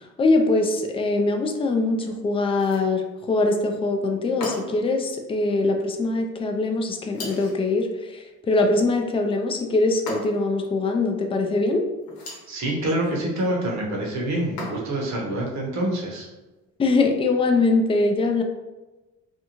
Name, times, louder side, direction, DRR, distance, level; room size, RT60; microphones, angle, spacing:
voice 1, 0.0-11.8 16.8-18.4, left 3 dB, 20° left, 4 dB, 0.3 m, -22 dB
sound 1, 2.5-3.0 4.4-4.9 7.1-7.7 10.1-10.6 12.0-12.5 14.6-15.1, left 2 dB, 85° left, 0.9 m, -36 dB
voice 2, 12.5-16.3, right 1 dB, 65° right, -2 dB, 0.9 m, -26 dB
2.6 x 2.3 x 2.9 m, 1.1 s
cardioid pair, 90°, 30 cm